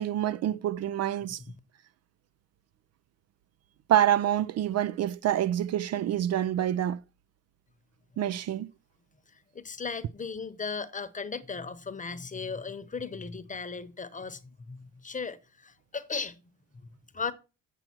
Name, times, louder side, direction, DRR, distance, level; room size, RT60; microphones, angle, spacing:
voice 1, 0.0-1.4 3.9-7.0 8.2-8.7, right 11 dB, 55° right, 0.4 m, -27 dB
voice 2, 9.3-16.4 16.8-17.3, left 5 dB, 25° left, 0.9 m, -37 dB
7.6 x 7.5 x 4.4 m
cardioid pair, 90°, 30 cm